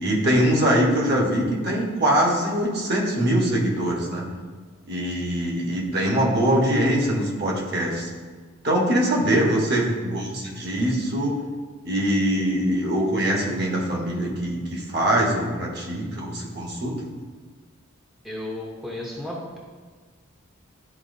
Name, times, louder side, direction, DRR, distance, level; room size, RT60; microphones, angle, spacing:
voice 1, 0.0-4.2 4.9-8.1 8.6-11.4 11.8-17.1, right 1 dB, 50° right, -1 dB, 1.2 m, -23 dB
voice 2, 18.2-19.6, left 1 dB, ahead, -4 dB, 0.7 m, -33 dB
11.0 x 4.4 x 2.6 m, 1.5 s
head